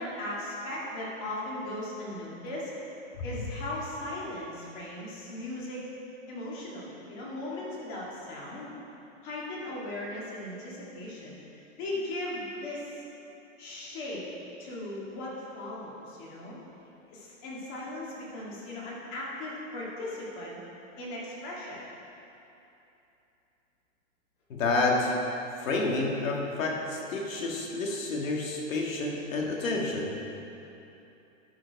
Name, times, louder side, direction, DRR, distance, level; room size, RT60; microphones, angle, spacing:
voice 1, 0.0-2.7 3.2-5.8 6.3-8.7 9.2-13.0 13.6-14.2 14.6-16.6 17.1-20.6 21.0-21.8, left 1 dB, 35° left, -5 dB, 2.0 m, -38 dB
voice 2, 24.5-25.2 25.6-30.2, left 2 dB, 80° left, -1 dB, 1.8 m, -29 dB
11.5 x 4.8 x 4.7 m, 2.9 s
hypercardioid pair, 155°, 39 cm